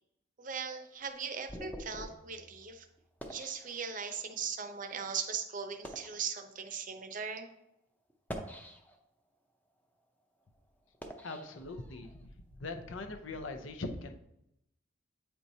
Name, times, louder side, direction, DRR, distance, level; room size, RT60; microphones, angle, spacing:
voice 1, 0.4-2.9 3.3-7.5, right 6 dB, 45° right, 7 dB, 0.6 m, -39 dB
sound 1, 0.6-4.3 5.0-5.2 5.7-6.2 7.0-7.2 8.1-9.2 9.7-12.2, equal, 10° left, 0.6 m, -47 dB
voice 2, 11.2-12.3 12.6-14.2, left 2 dB, 80° left, 6 dB, 0.7 m, -41 dB
8.6 x 4.5 x 2.7 m, 0.81 s
head